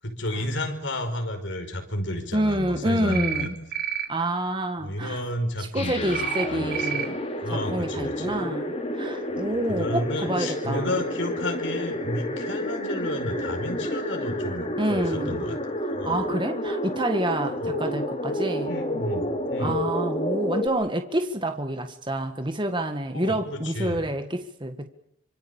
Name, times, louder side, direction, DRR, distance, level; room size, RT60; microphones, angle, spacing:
voice 1, 0.0-3.5 4.8-7.1 7.4-8.4 9.3-15.6 15.9-16.2 17.5-17.7 18.6-19.8 23.1-24.0, left 1 dB, 75° left, 5.2 m, -32 dB
voice 2, 2.3-3.5 4.1-5.2 5.7-7.2 7.5-11.0 14.8-15.4 16.0-18.7 19.6-24.9, right 1 dB, 25° right, 1.8 m, -28 dB
sound 1, 3.1-3.5 3.7-4.1 6.1-6.4 6.7-7.0, right 10 dB, 50° right, 3.1 m, -29 dB
sound 2, 5.7-20.7, left 1 dB, 35° left, 3.1 m, -30 dB
26.0 x 26.0 x 7.2 m
head